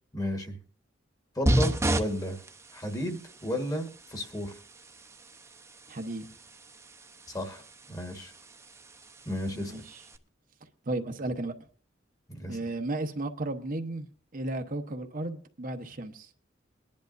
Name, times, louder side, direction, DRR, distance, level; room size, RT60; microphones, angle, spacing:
voice 1, 0.1-0.6 1.3-2.4 2.7-4.6 7.3-7.6 7.9-8.3 9.2-9.8 12.3-12.6, equal, 20° left, 1.5 m, -33 dB
sound 1, 1.5-10.2, right 1 dB, 15° right, 0.8 m, -34 dB
voice 2, 5.9-6.3 9.5-10.0 10.9-11.5 12.5-14.1 14.3-16.3, right 2 dB, 45° right, 0.9 m, -34 dB
22.0 x 10.5 x 2.6 m
head